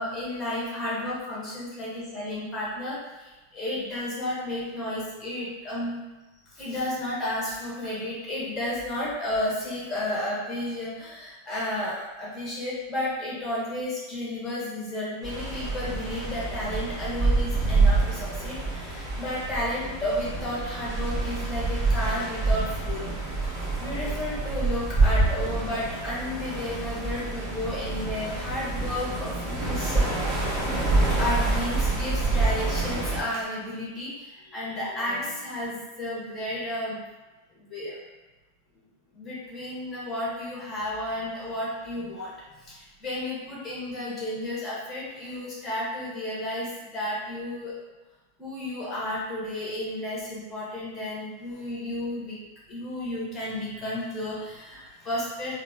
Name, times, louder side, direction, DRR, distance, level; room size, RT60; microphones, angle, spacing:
voice 1, 0.0-6.0 6.5-23.1 23.4-30.8 31.1-37.0 37.5-38.0 39.1-42.3 42.6-47.7 48.4-52.4 52.7-55.5, left 1 dB, 20° left, -6 dB, 1.4 m, -32 dB
sound 1, 15.2-33.2, right 3 dB, 25° right, 1.4 m, -27 dB
3.7 x 2.1 x 3.7 m, 1.1 s
figure-of-eight pair, 90°, 0 cm